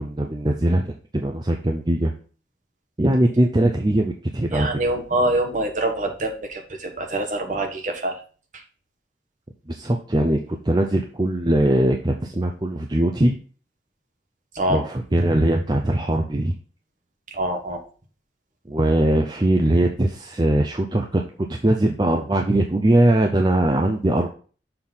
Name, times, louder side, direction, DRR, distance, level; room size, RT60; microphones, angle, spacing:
voice 1, 0.0-2.1 3.0-4.7 9.7-13.4 14.7-16.5 18.7-24.3, right 1 dB, 25° right, 3 dB, 0.5 m, -21 dB
voice 2, 4.5-8.2 8.5-8.6 14.5-14.8 17.3-17.8, right 1 dB, 45° right, 3 dB, 1.3 m, -25 dB
6.7 x 4.0 x 5.5 m, 0.40 s
head